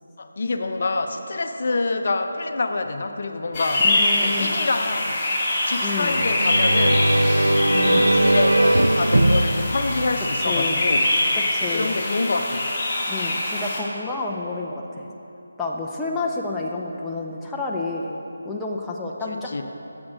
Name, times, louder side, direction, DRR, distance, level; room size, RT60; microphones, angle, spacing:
voice 1, 0.2-3.9 4.2-5.2 5.6-7.1 7.4-11.1 11.7-12.7 19.3-19.6, left 3 dB, 55° left, 6 dB, 0.6 m, -27 dB
sound 1, 3.5-13.8, left 1 dB, 25° left, 1.7 m, -24 dB
voice 2, 3.8-4.5 5.8-6.2 7.7-8.1 10.5-10.9 11.5-12.0 13.1-15.1 15.6-18.2 18.4-19.6, left 3 dB, 5° left, -3 dB, 0.5 m, -30 dB
sound 2, 6.1-10.8, right 1 dB, 90° right, 0.4 m, -20 dB
8.6 x 7.3 x 6.2 m, 2.9 s
figure-of-eight pair, 160°, 0 cm